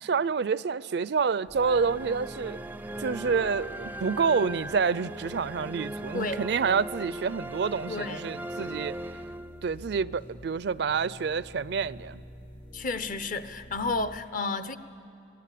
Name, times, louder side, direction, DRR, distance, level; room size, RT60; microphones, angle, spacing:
voice 1, 0.0-2.6 3.0-9.0 9.6-12.2, right 5 dB, 70° right, 0.4 m, -28 dB
sound 1, 1.5-14.2, equal, 70° left, 2.2 m, -49 dB
sound 2, 1.5-9.9, right 1 dB, 10° right, 0.4 m, -39 dB
voice 2, 6.1-6.5 7.9-8.2 12.7-14.8, left 3 dB, 50° left, 0.8 m, -31 dB
25.0 x 18.5 x 8.4 m
head